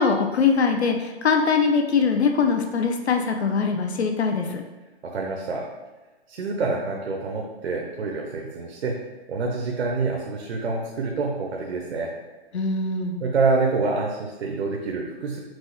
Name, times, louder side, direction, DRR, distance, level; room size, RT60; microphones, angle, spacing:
voice 1, 0.0-4.6 12.5-13.2, left 5 dB, 80° left, 4 dB, 0.6 m, -22 dB
voice 2, 5.0-5.7 6.3-9.0 9.3-12.1 13.2-15.4, right 3 dB, 75° right, 0 dB, 0.7 m, -26 dB
6.0 x 2.2 x 3.0 m, 1.2 s
hypercardioid pair, 155°, 32 cm